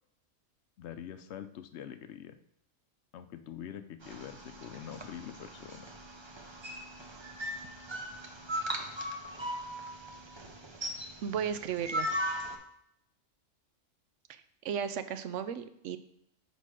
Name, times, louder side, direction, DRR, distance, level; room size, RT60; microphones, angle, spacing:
voice 1, 0.8-2.4 3.1-5.8, left 9 dB, 70° left, 10 dB, 0.8 m, -44 dB
sound 1, 4.0-12.6, equal, 30° right, 0.6 m, -39 dB
voice 2, 11.2-12.1 14.3-16.0, right 8 dB, 75° right, 12 dB, 0.9 m, -35 dB
6.2 x 4.5 x 4.9 m, 0.74 s
omnidirectional pair, 1.3 m